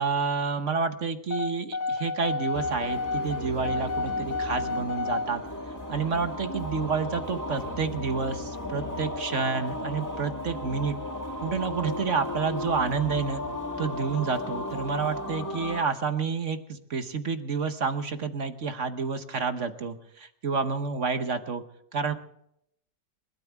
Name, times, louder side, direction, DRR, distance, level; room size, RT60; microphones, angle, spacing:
voice 1, 0.0-5.4 5.9-11.0 11.4-13.4 13.8-21.6 21.9-22.1, right 5 dB, 50° right, 9 dB, 1.2 m, -29 dB
sound 1, 1.3-5.3, left 3 dB, 45° left, 1.7 m, -30 dB
sound 2, 2.5-15.8, left 1 dB, 10° left, 1.4 m, -35 dB
28.5 x 13.0 x 3.5 m, 0.75 s
omnidirectional pair, 1.8 m